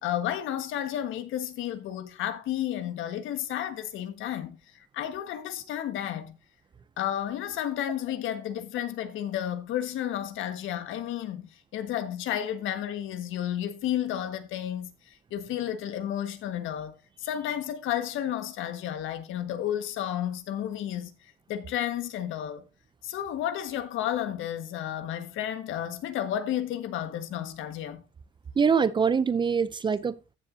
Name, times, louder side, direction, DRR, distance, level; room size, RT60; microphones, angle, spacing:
voice 1, 0.0-4.6 4.9-6.3 7.0-14.9 15.3-21.1 21.5-22.6 23.0-28.0, left 11 dB, 75° left, 1.5 m, -32 dB
voice 2, 28.6-30.3, right 6 dB, 25° right, 0.4 m, -24 dB
14.5 x 7.0 x 2.7 m
cardioid pair, 130°, 21 cm